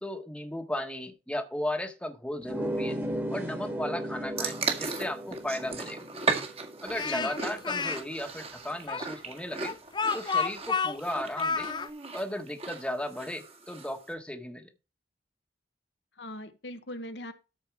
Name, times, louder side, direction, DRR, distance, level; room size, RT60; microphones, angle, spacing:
voice 1, 0.0-3.0 3.3-6.0 6.8-9.8 10.1-11.7 12.1-14.7, left 1 dB, 5° left, 1.4 m, -35 dB
sound 1, 2.4-7.7, equal, 10° right, 1.8 m, -36 dB
sound 2, 4.4-14.0, right 4 dB, 35° right, 1.9 m, -36 dB
Speech, 6.9-8.0 8.9-11.9, left 5 dB, 25° left, 0.5 m, -30 dB
voice 2, 7.1-7.5 16.2-17.3, left 1 dB, 85° left, 1.4 m, -40 dB
13.5 x 4.8 x 4.7 m
head